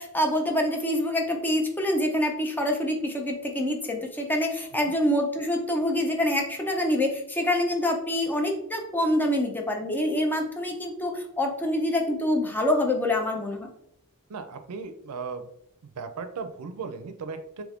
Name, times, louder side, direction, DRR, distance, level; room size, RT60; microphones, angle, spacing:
voice 1, 0.0-13.7, left 1 dB, 10° left, 2 dB, 0.5 m, -26 dB
voice 2, 14.3-15.5 16.0-17.6, right 5 dB, 90° right, 8 dB, 0.4 m, -36 dB
3.1 x 2.5 x 3.4 m, 0.73 s
head